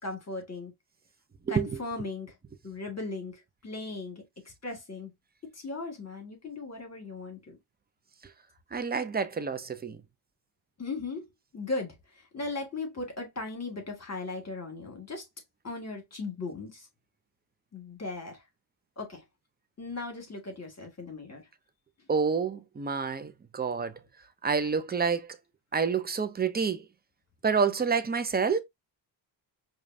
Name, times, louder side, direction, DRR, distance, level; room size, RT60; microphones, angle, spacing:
voice 1, 0.0-0.7 1.5-2.4 2.6-5.1 5.4-7.6 10.8-11.3 11.5-15.3 15.6-16.9 17.7-18.4 19.0-19.2 19.8-21.5, left 3 dB, 30° left, 1.9 m, -37 dB
voice 2, 8.7-10.0 22.1-24.0 24.4-25.4 25.7-26.8 27.4-28.6, right 5 dB, 20° right, 0.6 m, -28 dB
4.9 x 2.4 x 2.6 m
supercardioid pair, 70°, 49 cm